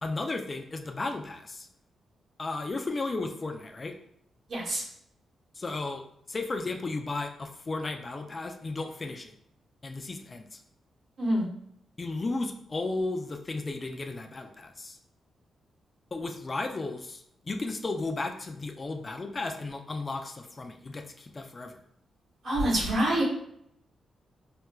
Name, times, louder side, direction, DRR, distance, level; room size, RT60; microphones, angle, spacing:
voice 1, 0.0-1.7 2.4-3.9 5.5-9.3 9.8-10.6 12.0-15.0 16.1-21.8, left 3 dB, 35° left, 4 dB, 0.4 m, -34 dB
voice 2, 4.5-4.8 11.2-11.4 22.4-23.2, right 1 dB, 65° right, -3 dB, 1.1 m, -26 dB
4.3 x 2.2 x 2.2 m, 0.72 s
cardioid pair, 85°, 0 cm